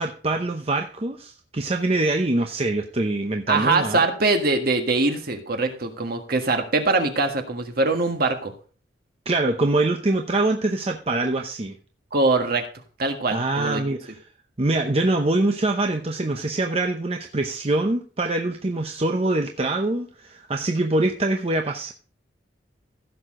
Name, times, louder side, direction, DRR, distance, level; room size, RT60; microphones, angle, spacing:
voice 1, 0.0-4.0 9.3-11.7 13.3-14.1 14.6-21.9, right 2 dB, 35° right, 4 dB, 0.8 m, -24 dB
voice 2, 3.5-8.5 12.1-12.6 13.0-13.8, right 3 dB, 55° right, 5 dB, 1.6 m, -22 dB
15.5 x 6.6 x 3.7 m, 0.39 s
head